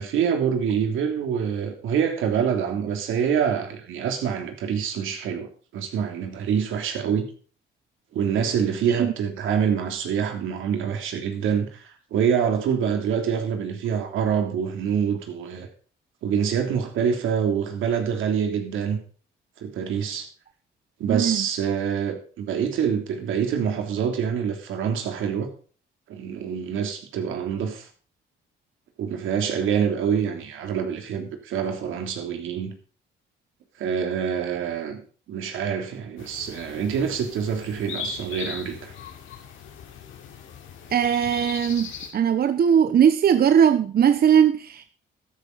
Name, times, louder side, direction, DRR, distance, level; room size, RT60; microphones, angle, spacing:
voice 1, 0.0-7.3 8.1-15.7 16.2-19.0 19.6-20.3 21.0-25.5 26.1-27.9 29.0-32.7 33.8-35.0 35.3-38.9, right 7 dB, 85° right, 3.1 m, -26 dB
voice 2, 21.1-21.5 40.9-44.9, right 8 dB, 50° right, 0.9 m, -19 dB
sound 1, 36.2-42.1, left 6 dB, 85° left, 3.0 m, -39 dB
13.0 x 11.5 x 4.0 m
cardioid pair, 90°, 20 cm